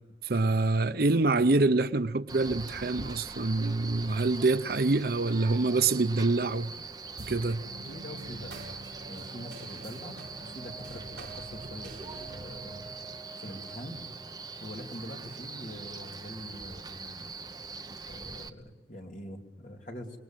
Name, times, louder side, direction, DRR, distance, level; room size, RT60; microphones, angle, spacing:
voice 1, 0.2-6.7 7.2-7.6, right 3 dB, 55° right, 0.8 m, -26 dB
Male speech man speaking, 2.3-18.5, right 4 dB, 20° right, 1.0 m, -43 dB
sound 1, 7.2-15.9, right 2 dB, 70° right, 2.6 m, -47 dB
voice 2, 7.9-8.5 9.1-12.9 13.4-14.0 14.6-17.3 18.1-20.2, left 1 dB, 45° left, 3.1 m, -44 dB
28.0 x 21.0 x 9.1 m
head